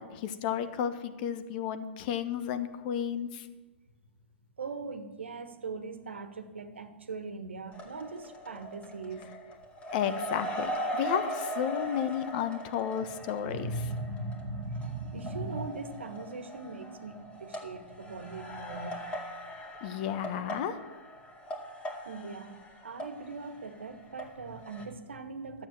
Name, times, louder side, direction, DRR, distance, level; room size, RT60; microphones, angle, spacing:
voice 1, 0.0-3.5 9.9-13.7 19.8-20.8, left 9 dB, 45° left, 11 dB, 1.1 m, -32 dB
voice 2, 4.6-9.3 13.4-19.0 22.0-25.7, right 3 dB, 75° right, 9 dB, 1.4 m, -39 dB
sound 1, 7.7-24.3 24.6-24.8, equal, 20° left, 2.1 m, -40 dB
12.5 x 7.7 x 7.4 m, 1.2 s
figure-of-eight pair, 115°, 6 cm